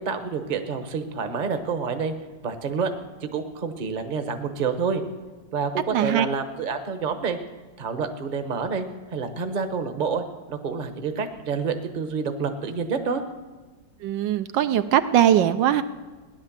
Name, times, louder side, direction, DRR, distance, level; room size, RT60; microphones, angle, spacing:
voice 1, 0.0-2.1 2.4-2.9 3.2-5.0 5.5-7.4 7.8-8.8 9.1-13.2, right 5 dB, 35° right, 7 dB, 0.9 m, -28 dB
voice 2, 5.9-6.3 14.0-15.8, right 11 dB, 80° right, 10 dB, 1.3 m, -20 dB
17.5 x 10.5 x 7.4 m, 1.3 s
omnidirectional pair, 2.0 m